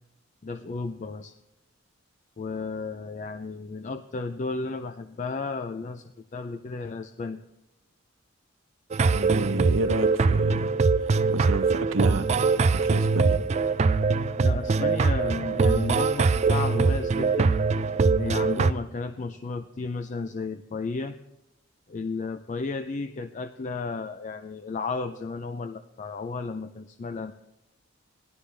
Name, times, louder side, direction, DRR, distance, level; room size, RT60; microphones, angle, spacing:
voice 1, 0.4-1.3 2.4-6.0 6.3-7.4 14.4-17.6 18.2-21.2 21.9-27.3, left 4 dB, 35° left, 9 dB, 0.4 m, -33 dB
sound 1, 8.9-18.7, right 4 dB, 35° right, 0.3 m, -23 dB
voice 2, 9.1-10.8 11.3-12.3 12.7-13.4, right 2 dB, 80° right, 9 dB, 0.8 m, -30 dB
17.0 x 11.5 x 3.3 m, 0.93 s
head